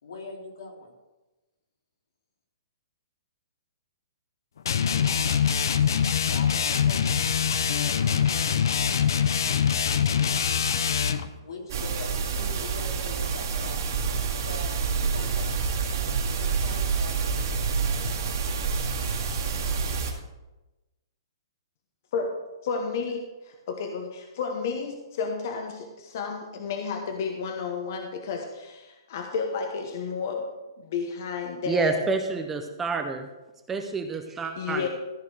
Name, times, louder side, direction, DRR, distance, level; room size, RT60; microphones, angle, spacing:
voice 1, 0.0-0.8 6.3-7.0 7.6-8.5 11.4-13.8 14.5-15.5 16.4-17.1 17.4-17.5, left 2 dB, 80° left, 0 dB, 3.2 m, -42 dB
sound 1, 4.7-11.3, left 7 dB, 65° left, 0.7 m, -24 dB
sound 2, 11.7-20.1, right 5 dB, 50° right, 2.1 m, -28 dB
voice 2, 22.6-30.4 30.8-32.1 34.6-34.9, left 5 dB, 40° left, 4 dB, 1.0 m, -32 dB
voice 3, 31.7-33.3 33.7-34.9, right 4 dB, 10° right, 6 dB, 0.5 m, -28 dB
14.0 x 5.0 x 6.4 m, 1.1 s
hypercardioid pair, 175°, 2 cm